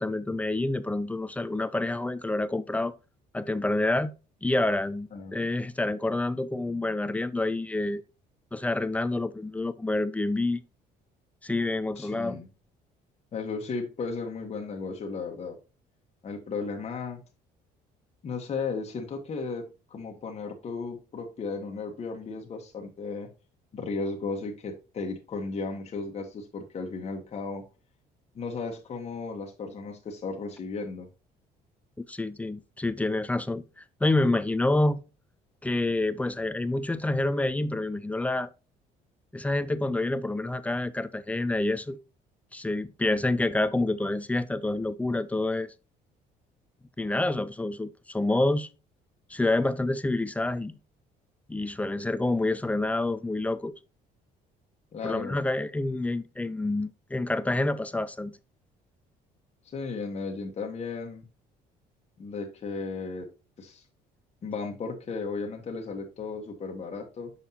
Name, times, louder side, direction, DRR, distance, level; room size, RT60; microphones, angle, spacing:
voice 1, 0.0-2.9 3.3-4.1 4.4-8.0 8.5-10.6 11.4-12.4 32.1-33.6 34.0-35.0 35.6-38.5 39.3-42.0 42.5-45.7 47.0-48.7 49.3-50.8 51.5-53.7 55.0-58.4, left 2 dB, 10° left, 0.4 m, -28 dB
voice 2, 5.1-5.4 12.0-12.5 13.3-15.6 16.2-17.2 18.2-23.3 23.7-27.6 28.3-31.1 54.9-55.4 59.7-61.2 62.2-63.3 63.6-63.8 64.4-67.3, left 4 dB, 40° left, 1.2 m, -35 dB
6.3 x 5.6 x 2.8 m
cardioid pair, 110°, 17 cm